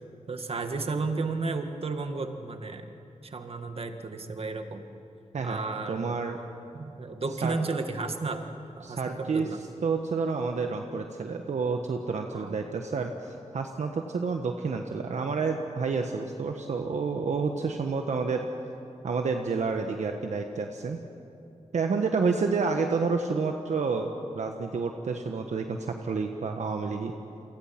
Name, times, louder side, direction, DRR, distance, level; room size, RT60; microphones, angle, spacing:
voice 1, 0.3-2.9 3.2-4.8 5.4-6.2 6.7-8.5 8.8-9.6 12.3-12.6, right 3 dB, 50° right, 6 dB, 1.9 m, -33 dB
voice 2, 5.9-6.4 7.4-7.6 8.8-9.5 9.8-18.5 19.0-21.0 21.7-24.1 24.3-27.1, right 4 dB, 70° right, 4 dB, 1.3 m, -29 dB
29.0 x 24.5 x 6.0 m, 2.8 s
wide cardioid pair, 90°, 12 cm